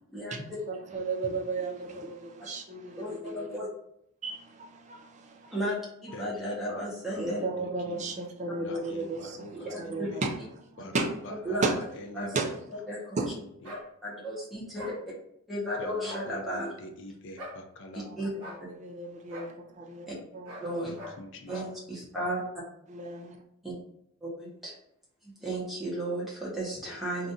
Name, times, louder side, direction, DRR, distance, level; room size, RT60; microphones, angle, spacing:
voice 1, 0.7-3.5 4.2-5.5 7.2-9.4 9.8-10.3 10.9-11.1 11.6-11.7 12.3-12.4 13.1-13.3 18.1-18.2 18.5-20.1 20.3-20.6 22.9-23.4, right 3 dB, 30° right, 1 dB, 0.4 m, -34 dB
voice 2, 3.0-3.7 5.5-7.4 9.6-10.1 11.4-11.7 12.1-12.3 12.9-13.2 14.0-14.9 15.5-16.7 18.2-18.3 20.1-20.2 20.6-20.9 21.5-22.4 23.6-23.7 24.2-24.7 25.2-27.3, equal, ahead, -6 dB, 0.8 m, -34 dB
voice 3, 6.1-8.0 8.6-10.2 10.8-12.5 13.2-13.7 15.8-18.3 20.8-21.6, left 1 dB, 55° left, 4 dB, 0.5 m, -45 dB
sound 1, 13.6-13.9 14.8-15.0 16.0-16.3 17.4-17.6 18.4-18.6 19.3-19.5 20.4-20.7 20.9-21.2 21.5-21.7, left 1 dB, 80° right, 1.1 m, -42 dB
2.7 x 2.5 x 3.6 m, 0.74 s
head